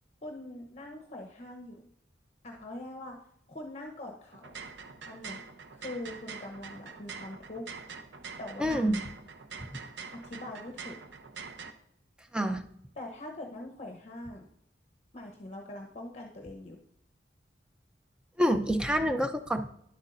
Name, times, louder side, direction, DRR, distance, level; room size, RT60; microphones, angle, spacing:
voice 1, 0.2-1.8 2.4-4.6 5.0-5.4 5.7-7.7 8.4-8.9 10.1-11.0 13.0-14.5 15.1-16.8, left 1 dB, 35° left, 1 dB, 0.9 m, -43 dB
sound 1, 4.3-11.7, right 5 dB, 75° right, 0.7 m, -45 dB
voice 2, 8.6-9.0 12.3-12.6 18.4-19.7, equal, 5° right, 7 dB, 0.5 m, -27 dB
10.5 x 8.1 x 2.6 m, 0.72 s
head